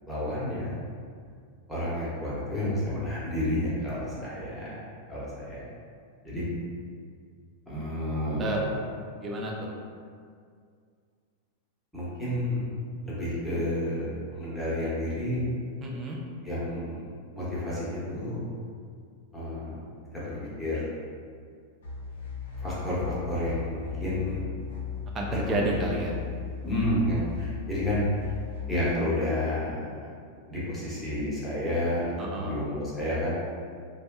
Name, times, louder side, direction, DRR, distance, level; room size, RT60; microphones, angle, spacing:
voice 1, 0.1-0.7 1.7-5.7 6.2-6.4 7.7-8.8 11.9-12.7 13.0-15.4 16.4-17.0 17.3-18.4 19.3-19.9 20.1-20.9 22.6-24.5 25.3-25.6 26.6-28.0 28.7-29.9 30.5-33.4, left 1 dB, 5° left, -10 dB, 0.8 m, -30 dB
voice 2, 9.2-9.7 15.8-16.2 25.1-26.2 32.2-32.5, right 1 dB, 25° right, -2 dB, 0.4 m, -30 dB
sound 1, 21.8-28.8, left 8 dB, 60° left, 0.5 m, -37 dB
2.6 x 2.2 x 2.2 m, 2.2 s
figure-of-eight pair, 90°, 0 cm